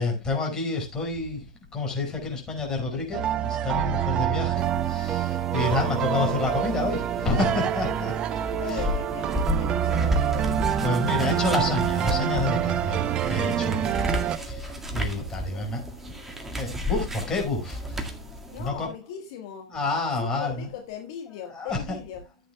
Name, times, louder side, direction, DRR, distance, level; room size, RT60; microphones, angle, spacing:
voice 1, 0.0-8.9 10.5-14.0 14.4-18.2 18.6-18.9 19.7-20.7 21.5-22.0, left 3 dB, 20° left, 5.5 m, -29 dB
sound 1, 3.1-14.4, right 10 dB, 30° right, 0.7 m, -26 dB
sound 2, 4.6-18.7, left 1 dB, 10° right, 1.9 m, -33 dB
voice 2, 8.5-10.6 15.5-15.7 18.5-19.7 20.2-22.2, left 9 dB, 55° left, 1.6 m, -39 dB
14.5 x 8.7 x 2.3 m
figure-of-eight pair, 100°, 3 cm